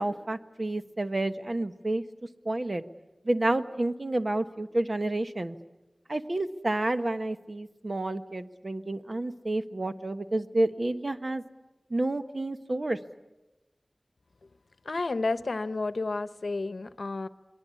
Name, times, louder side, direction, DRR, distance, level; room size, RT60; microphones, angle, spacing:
voice 1, 0.0-2.0 2.4-2.8 3.2-5.6 6.1-11.4 11.9-13.0, right 2 dB, 50° right, 9 dB, 1.3 m, -29 dB
voice 2, 14.9-17.3, left 3 dB, 80° left, 13 dB, 0.8 m, -31 dB
28.5 x 22.0 x 8.4 m, 1.1 s
wide cardioid pair, 40°, 0 cm